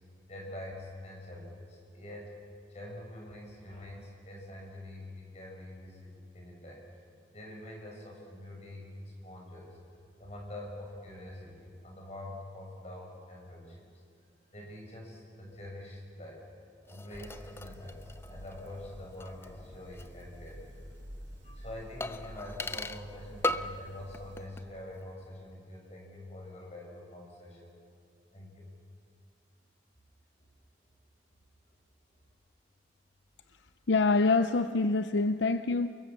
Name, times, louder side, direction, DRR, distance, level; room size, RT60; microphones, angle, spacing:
voice 1, 0.3-2.4 2.7-6.8 7.3-9.8 10.2-13.9 14.5-16.5 16.9-20.9 21.4-27.8 28.3-28.7, left 1 dB, 35° left, 7.2 m, -45 dB
sound 1, 16.8-20.2 20.5-20.6 22.0-23.1 23.4-23.9 24.1-24.7 25.0-25.1, left 2 dB, 15° left, 0.6 m, -38 dB
sound 2, 17.1-24.5, equal, 75° right, 5.8 m, -49 dB
voice 2, 33.9-35.9, left 3 dB, 75° left, 0.6 m, -25 dB
29.0 x 23.0 x 7.3 m
head